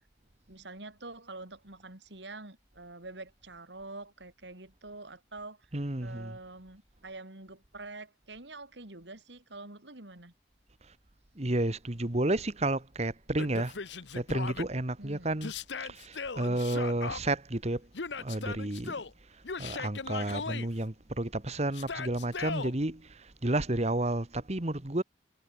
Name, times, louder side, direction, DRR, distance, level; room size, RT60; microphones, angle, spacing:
voice 1, 0.5-5.7 6.0-10.3 15.0-15.3, right 2 dB, 75° right, 4.3 m, -46 dB
voice 2, 5.7-6.4 11.3-13.8 14.1-15.5 15.8-17.9 18.2-19.0 19.6-25.0, right 1 dB, 35° right, 1.6 m, -31 dB
Yell, 13.4-14.7 15.4-17.2 17.9-19.1 19.4-20.7 21.7-22.7, left 4 dB, 75° left, 1.1 m, -38 dB
head